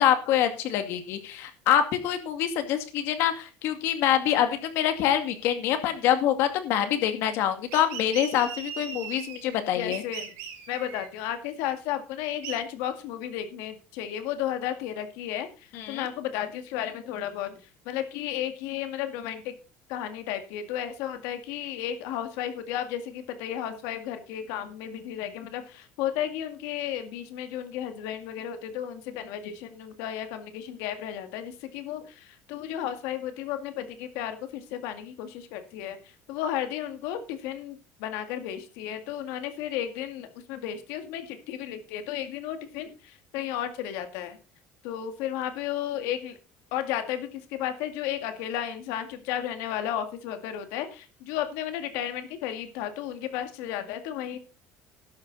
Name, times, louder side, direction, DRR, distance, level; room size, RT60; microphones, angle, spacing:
voice 1, 0.0-10.0 15.7-16.1, left 10 dB, 65° left, 8 dB, 2.2 m, -25 dB
sound 1, 7.7-9.6 9.9-11.1 12.4-12.5, right 8 dB, 85° right, 4.0 m, -38 dB
voice 2, 9.7-10.4 10.7-17.6 17.9-19.5 19.9-44.4 44.8-46.4 46.7-54.4, left 10 dB, 90° left, 8 dB, 2.1 m, -33 dB
12.0 x 10.5 x 4.1 m, 0.35 s
cardioid pair, 165°, 5 cm